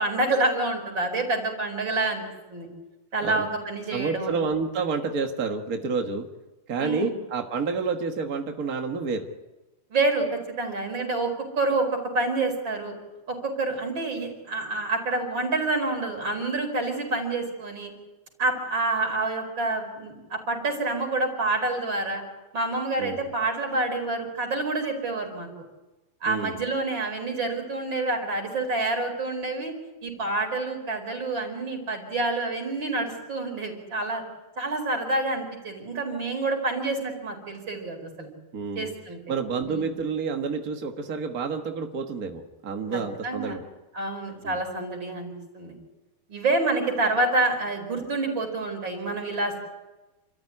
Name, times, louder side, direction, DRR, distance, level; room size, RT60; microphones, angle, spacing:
voice 1, 0.0-2.2 2.5-2.7 3.1-4.3 6.8-7.1 9.9-12.9 13.3-17.9 18.4-22.2 22.5-25.5 26.2-29.7 30.0-34.2 34.6-38.3 38.8-39.2 39.7-39.9 42.9-43.6 43.9-45.7 46.3-49.6, right 2 dB, 30° right, 3 dB, 5.3 m, -28 dB
voice 2, 3.9-6.3 6.7-9.3 23.0-23.3 26.3-26.6 38.5-38.9 39.3-43.6 44.4-44.6, right 4 dB, 50° right, 3 dB, 1.0 m, -29 dB
29.0 x 14.0 x 9.8 m, 1.1 s
omnidirectional pair, 4.1 m